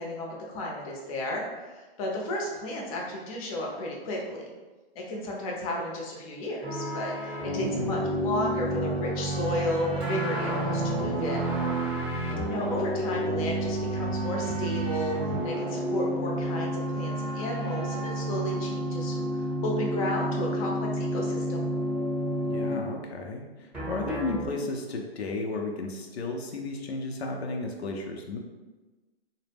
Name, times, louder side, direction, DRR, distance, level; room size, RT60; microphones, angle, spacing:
voice 1, 0.0-4.5 5.0-11.5 12.5-21.7, left 1 dB, 35° left, -2 dB, 0.6 m, -33 dB
sound 1, 6.6-22.8 23.7-24.5, right 1 dB, 5° right, 0.7 m, -30 dB
voice 2, 22.5-28.4, left 3 dB, 85° left, 2 dB, 0.5 m, -34 dB
2.0 x 2.0 x 3.3 m, 1.2 s
hypercardioid pair, 135°, 31 cm